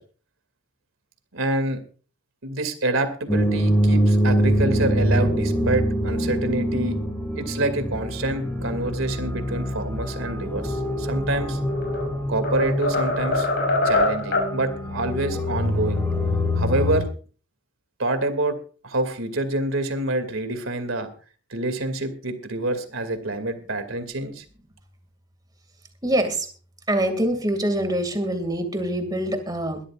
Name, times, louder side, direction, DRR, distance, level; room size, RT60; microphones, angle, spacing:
voice 1, 1.3-1.8 2.4-7.0 7.4-11.6 12.3-13.5 13.8-16.0 16.5-17.1 18.0-18.6 18.8-21.1 21.5-24.4, right 2 dB, 80° right, 8 dB, 2.5 m, -27 dB
sound 1, 3.3-17.0, equal, 10° left, 2.6 m, -24 dB
sound 2, 11.6-12.1 12.4-14.6, left 2 dB, 55° left, 6.1 m, -23 dB
voice 2, 26.0-26.5 26.9-29.8, right 1 dB, 20° right, 7 dB, 2.4 m, -24 dB
22.5 x 13.0 x 2.5 m, 0.38 s
head